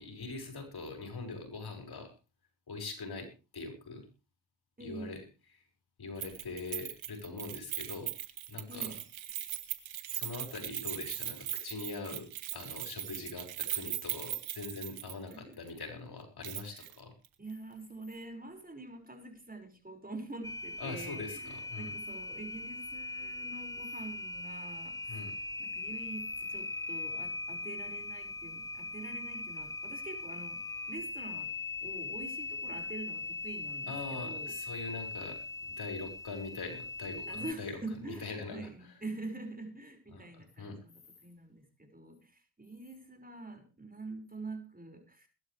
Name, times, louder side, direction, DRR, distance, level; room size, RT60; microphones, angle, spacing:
voice 1, 0.0-2.1 2.7-4.0 4.8-5.2 5.5-5.7 6.0-8.1 8.5-8.9 10.1-12.2 12.5-17.1 20.8-21.9 25.1-25.3 33.9-37.8 38.0-39.0 40.1-40.8, left 3 dB, 55° left, 4 dB, 5.8 m, -42 dB
voice 2, 4.8-5.2 8.7-9.0 12.1-12.2 15.3-15.6 16.7-16.9 17.4-25.2 25.6-31.5 31.8-34.5 37.3-45.3, right 2 dB, 20° right, 5 dB, 5.8 m, -45 dB
Keys jangling, 6.2-15.4 15.7-15.8 16.4-16.9 17.2-17.3, right 13 dB, 75° right, 1.9 m, -39 dB
sound 1, 20.4-37.5, left 3 dB, 5° left, 1.1 m, -40 dB
21.5 x 11.5 x 3.4 m, 0.32 s
supercardioid pair, 50°, 46 cm